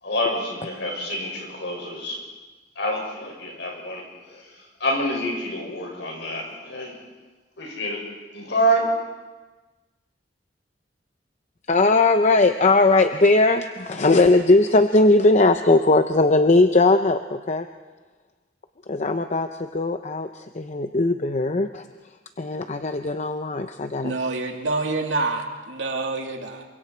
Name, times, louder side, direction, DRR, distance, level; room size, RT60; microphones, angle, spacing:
voice 1, 0.0-2.2 2.8-4.5 4.8-6.9 7.6-8.0 8.3-8.9, equal, 70° left, 0 dB, 6.3 m, -27 dB
voice 2, 11.7-17.7 18.9-21.9 22.4-24.1, left 2 dB, 40° left, 8 dB, 0.7 m, -19 dB
voice 3, 24.0-26.6, right 3 dB, 90° right, 3 dB, 2.5 m, -27 dB
28.0 x 24.5 x 4.5 m, 1.3 s
head